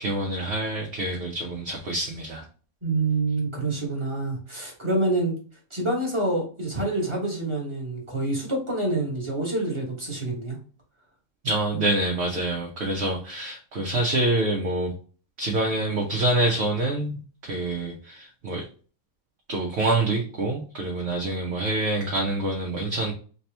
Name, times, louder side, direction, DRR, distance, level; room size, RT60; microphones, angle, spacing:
voice 1, 0.0-2.4 11.4-14.9 15.4-18.6 19.5-23.1, right 2 dB, 60° right, 1.0 m, -26 dB
voice 2, 2.8-5.4 5.7-10.6, right 2 dB, 20° right, 1.3 m, -27 dB
3.4 x 2.9 x 3.2 m
omnidirectional pair, 1.4 m